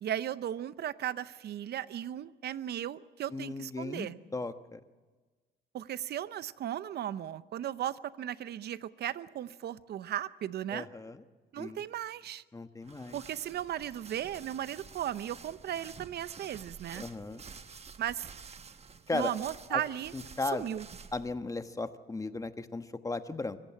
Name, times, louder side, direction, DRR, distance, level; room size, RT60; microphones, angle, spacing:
voice 1, 0.0-4.2 5.7-10.9 11.5-12.4 13.1-17.0 18.0-18.3 19.1-20.1 20.5-20.9, right 11 dB, 70° right, 16 dB, 0.7 m, -36 dB
voice 2, 3.3-4.8 10.7-11.2 11.6-11.8 12.5-13.2 16.9-17.4 19.1-19.3 19.7-19.8 20.1-20.6 21.1-23.6, left 3 dB, 20° left, 9 dB, 1.2 m, -36 dB
sound 1, 12.8-21.3, right 5 dB, 35° right, 1.1 m, -50 dB
24.5 x 15.0 x 8.5 m, 1.3 s
cardioid pair, 100°, 18 cm